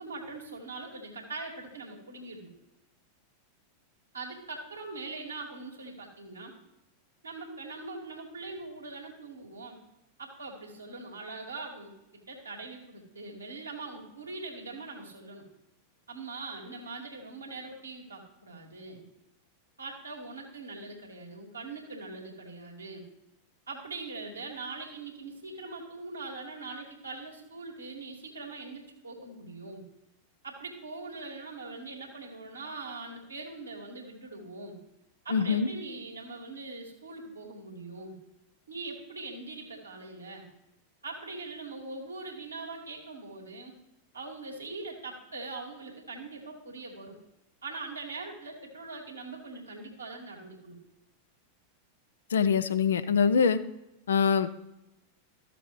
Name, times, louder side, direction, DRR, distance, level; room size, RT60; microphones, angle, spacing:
voice 1, 0.0-2.5 4.1-6.5 7.2-9.8 10.2-15.5 16.1-19.0 19.8-23.1 23.7-29.8 30.4-34.8 35.2-38.2 38.7-40.5 41.0-43.7 44.1-47.2 47.6-50.8, right 3 dB, 80° right, -1 dB, 2.2 m, -42 dB
voice 2, 35.3-35.7 52.3-53.6 54.1-54.5, left 6 dB, 65° left, 11 dB, 0.6 m, -24 dB
14.0 x 7.0 x 3.1 m, 0.93 s
figure-of-eight pair, 90°, 0 cm